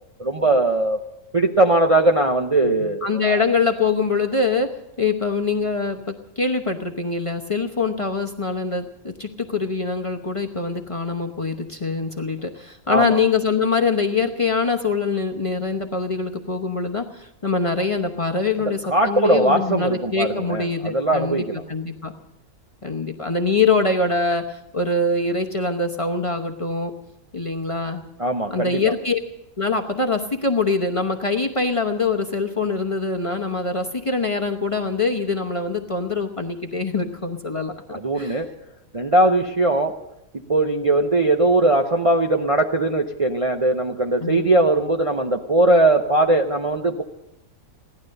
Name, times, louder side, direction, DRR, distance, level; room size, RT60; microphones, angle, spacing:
voice 1, 0.2-1.0 1.3-3.3 12.9-13.2 18.9-21.6 28.2-28.9 37.9-38.5 38.9-40.0 40.5-47.0, right 2 dB, 30° right, 2 dB, 0.7 m, -20 dB
voice 2, 2.6-6.0 6.4-22.1 22.8-26.9 27.3-28.0 28.5-29.2 29.6-38.4 44.2-44.5, left 4 dB, 25° left, 3 dB, 0.9 m, -24 dB
16.5 x 12.0 x 6.5 m, 0.87 s
omnidirectional pair, 1.5 m